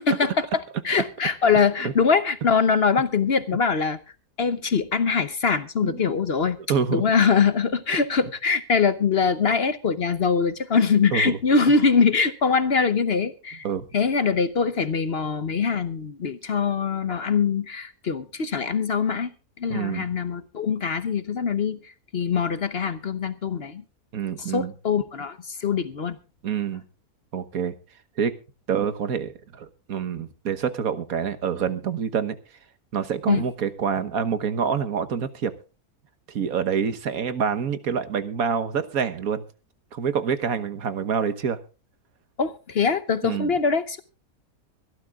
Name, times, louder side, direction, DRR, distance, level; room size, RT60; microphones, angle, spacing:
voice 1, 0.0-4.0 4.4-6.6 6.9-13.7 13.9-23.8 24.4-26.2 33.3-33.4 42.4-44.0, left 5 dB, 50° left, 1.0 m, -23 dB
voice 2, 6.7-7.0 11.1-11.4 13.6-13.9 19.7-20.2 24.1-24.7 26.4-26.8 27.3-27.8 28.2-28.3 28.7-32.4 32.9-35.5 36.3-39.4 39.9-41.6 43.2-43.5, right 7 dB, 70° right, 1.6 m, -26 dB
24.5 x 13.0 x 2.4 m
omnidirectional pair, 1.6 m